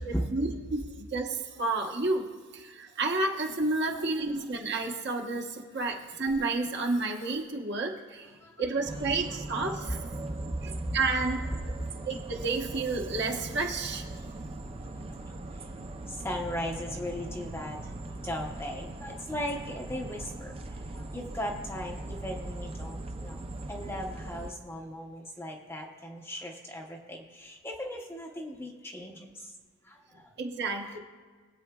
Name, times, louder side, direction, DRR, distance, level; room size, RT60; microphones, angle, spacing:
voice 1, 0.1-2.3 2.5-8.3 8.6-10.0 10.6-11.4 12.0-14.1 30.4-31.0, right 3 dB, 50° right, 1 dB, 1.0 m, -31 dB
voice 2, 3.9-4.3 4.9-5.0 8.2-9.4 9.8-9.9 10.8-11.0 14.8-15.0 15.6-15.7 16.1-17.9 18.2-23.4 23.7-29.5 29.8-30.3 30.8-31.0, equal, 10° left, 1 dB, 0.7 m, -38 dB
sound 1, 8.8-24.5, right 2 dB, 25° right, 0.4 m, -40 dB
21.0 x 8.3 x 2.3 m, 1.5 s
head